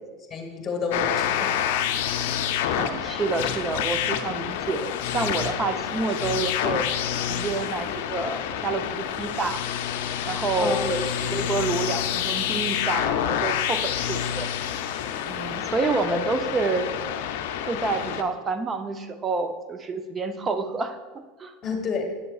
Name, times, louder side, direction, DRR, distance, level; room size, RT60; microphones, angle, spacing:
voice 1, 0.3-1.6 10.6-10.9 11.3-11.4 15.8-16.2 21.6-22.1, left 5 dB, 30° left, 3 dB, 1.3 m, -30 dB
sound 1, 0.9-18.2, left 9 dB, 70° left, 0.5 m, -28 dB
voice 2, 2.8-6.9 7.3-9.6 10.3-14.5 15.3-16.9 17.6-21.5, right 4 dB, 25° right, 8 dB, 0.6 m, -28 dB
8.6 x 6.6 x 2.4 m, 1.3 s
hypercardioid pair, 105°, 0 cm